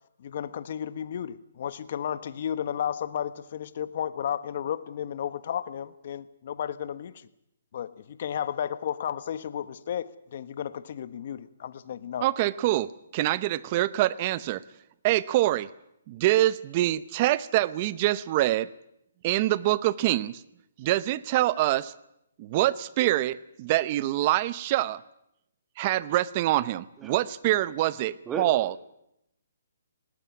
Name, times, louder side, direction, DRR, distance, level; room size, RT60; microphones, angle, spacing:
voice 1, 0.2-7.3 7.7-12.3, left 9 dB, 50° left, 1.3 m, -33 dB
voice 2, 12.2-14.6 15.0-15.7 16.1-18.7 19.2-20.4 20.8-21.9 22.4-25.0 25.8-28.7, right 15 dB, 30° right, 0.8 m, -25 dB
voice 3, 28.3-28.9, right 4 dB, 10° right, 1.7 m, -35 dB
19.0 x 18.5 x 9.5 m
hypercardioid pair, 160°, 0 cm